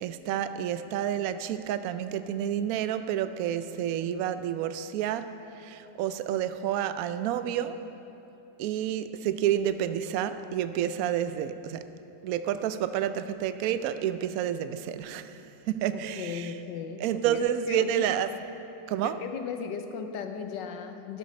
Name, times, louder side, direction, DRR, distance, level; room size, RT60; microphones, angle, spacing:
voice 1, 0.0-5.3 5.6-7.8 8.6-11.8 12.2-16.5 17.0-18.3 18.9-19.2, right 10 dB, 70° right, 11 dB, 0.9 m, -29 dB
voice 2, 15.9-17.0 17.3-18.2 19.0-21.2, left 6 dB, 75° left, 7 dB, 1.4 m, -37 dB
12.5 x 12.0 x 5.2 m, 2.9 s
omnidirectional pair, 2.0 m